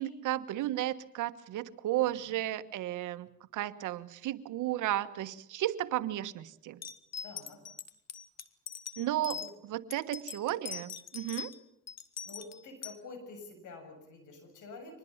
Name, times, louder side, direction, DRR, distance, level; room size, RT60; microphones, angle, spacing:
voice 1, 0.0-3.3 3.5-6.8 9.0-9.4 9.7-11.5, right 14 dB, 90° right, 12 dB, 1.4 m, -33 dB
sound 1, 6.8-9.5 9.9-11.6 11.9-13.0, left 7 dB, 60° left, 1.8 m, -42 dB
voice 2, 7.2-7.6 9.3-9.5 12.3-15.0, left 3 dB, 80° left, 7 dB, 7.0 m, -48 dB
25.0 x 20.0 x 7.3 m, 0.73 s
cardioid pair, 90°, 30 cm